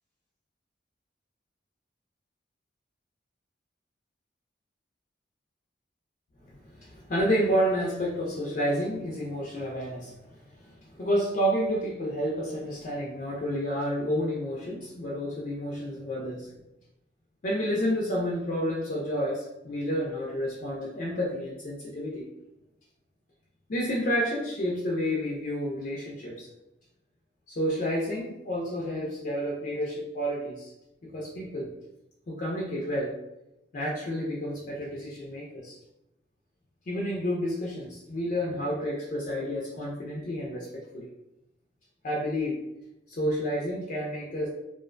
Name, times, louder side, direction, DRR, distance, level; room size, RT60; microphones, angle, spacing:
voice 1, 6.7-10.1 10.9-16.5 17.4-22.3 23.7-26.5 27.5-30.7 31.0-31.7 32.3-33.2 33.7-35.8 36.9-41.1 42.0-42.6 43.1-44.5, equal, 45° left, -3 dB, 0.4 m, -30 dB
2.4 x 2.1 x 2.4 m, 0.92 s
head